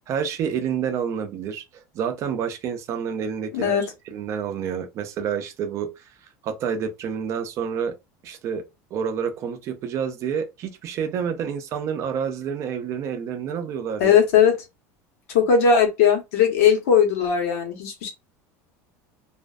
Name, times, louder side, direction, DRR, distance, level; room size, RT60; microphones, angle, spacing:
voice 1, 0.1-3.8 4.1-5.9 6.4-8.0 8.2-8.6 8.9-14.2, right 7 dB, 40° right, 0.5 m, -28 dB
voice 2, 3.5-3.9 14.0-14.5 15.3-18.1, left 7 dB, 80° left, 1.0 m, -18 dB
2.4 x 2.2 x 2.4 m
supercardioid pair, 145°, 8 cm